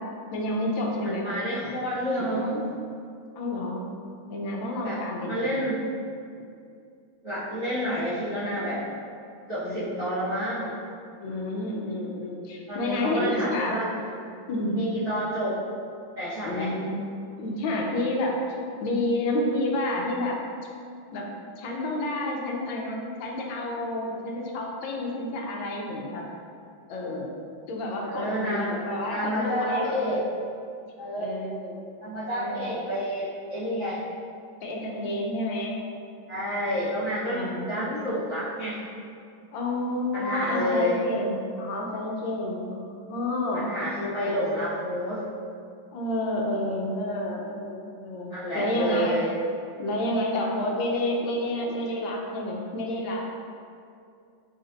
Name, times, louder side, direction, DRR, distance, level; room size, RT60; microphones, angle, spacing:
voice 1, 0.3-1.3 3.4-3.8 4.3-5.6 9.6-10.2 11.2-13.8 14.5-14.8 16.4-17.0 17.4-18.4 18.8-20.4 21.1-21.3 21.6-26.2 26.9-27.3 27.7-30.0 31.2-31.8 32.3-32.7 34.6-35.7 37.3-37.7 39.5-43.6 44.1-44.4 45.9-49.2 49.8-53.3, left 1 dB, 75° left, -1 dB, 1.3 m, -29 dB
voice 2, 1.0-2.6 4.8-5.0 5.2-5.8 7.2-8.8 9.5-10.7 12.7-13.9 14.7-15.6 16.1-16.7 28.0-28.8 29.1-30.2 31.0-31.3 32.0-34.0 36.3-38.8 40.1-41.0 43.5-45.2 48.3-49.3, equal, 45° right, -15 dB, 1.4 m, -29 dB
4.1 x 3.8 x 2.6 m, 2.4 s
omnidirectional pair, 2.2 m